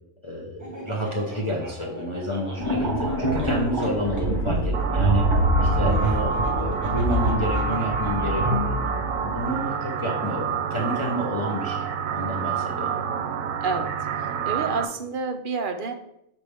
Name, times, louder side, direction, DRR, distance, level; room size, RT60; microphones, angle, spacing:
voice 1, 0.2-5.3 5.6-8.4 9.2-13.0, equal, 30° left, -2 dB, 0.6 m, -29 dB
Laughter, 0.6-4.3 5.8-8.7, equal, 15° right, 1.0 m, -41 dB
sound 1, 2.6-9.5, right 1 dB, 40° right, 1.0 m, -25 dB
sound 2, 4.7-14.9, right 6 dB, 85° right, 1.0 m, -28 dB
voice 2, 13.6-15.9, right 4 dB, 55° right, 5 dB, 0.6 m, -29 dB
6.8 x 4.3 x 3.4 m, 0.80 s
omnidirectional pair, 1.4 m